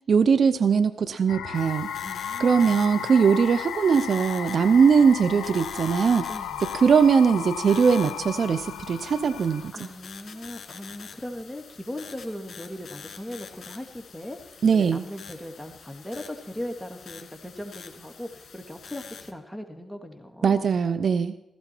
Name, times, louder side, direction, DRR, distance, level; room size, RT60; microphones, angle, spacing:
voice 1, 0.1-1.9 2.4-6.3 6.7-9.7 14.6-15.0 20.4-21.3, right 6 dB, 65° right, 12 dB, 0.6 m, -20 dB
sound 1, 1.3-9.7, left 10 dB, 90° left, 0.5 m, -35 dB
sound 2, 1.5-19.3, left 6 dB, 65° left, 2.1 m, -46 dB
voice 2, 2.0-2.7 6.3-6.6 9.7-14.4 14.7-20.6, left 1 dB, 5° left, 4 dB, 2.1 m, -38 dB
15.5 x 14.5 x 4.5 m, 0.92 s
supercardioid pair, 40°, 0 cm